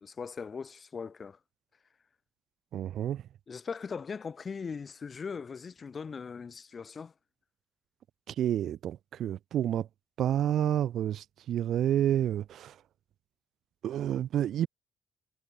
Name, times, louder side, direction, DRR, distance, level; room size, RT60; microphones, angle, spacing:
voice 1, 0.0-1.4 3.5-7.1, left 5 dB, 40° left, 1.7 m, -39 dB
voice 2, 2.7-3.2 8.3-9.9 10.2-12.8 13.8-14.7, right 11 dB, 70° right, 0.4 m, -29 dB
cardioid pair, 90°, 0 cm